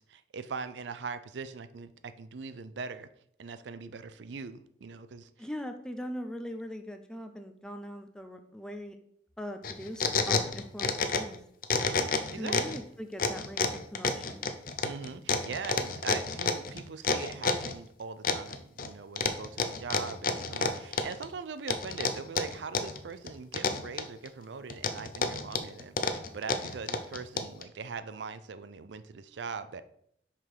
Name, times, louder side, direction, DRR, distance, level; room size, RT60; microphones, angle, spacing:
voice 1, 0.0-3.1 3.4-5.5 11.8-12.8 14.8-29.8, right 5 dB, 75° right, 12 dB, 0.5 m, -41 dB
voice 2, 5.4-9.0 9.4-11.4 12.4-14.5, equal, 5° left, 6 dB, 0.5 m, -41 dB
sound 1, 9.6-11.4 11.6-12.8 13.2-17.7 18.2-18.9 19.2-21.3 21.7-23.0 23.3-24.3 24.7-27.6, left 4 dB, 50° left, 0.6 m, -29 dB
5.7 x 5.0 x 4.7 m, 0.69 s
head